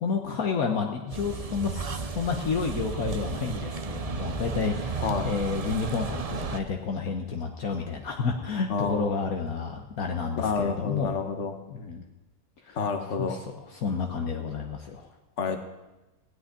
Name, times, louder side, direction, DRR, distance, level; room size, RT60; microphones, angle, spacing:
voice 1, 0.0-11.2 11.7-12.0 12.6-12.8 13.2-15.1, left 5 dB, 65° left, 3 dB, 1.5 m, -30 dB
sound 1, 1.1-6.6, right 4 dB, 45° right, 0.4 m, -33 dB
voice 2, 8.7-9.2 10.4-11.5 12.8-13.4 15.4-15.6, left 5 dB, 50° left, 6 dB, 1.6 m, -29 dB
17.0 x 6.5 x 9.8 m, 1.1 s
omnidirectional pair, 1.7 m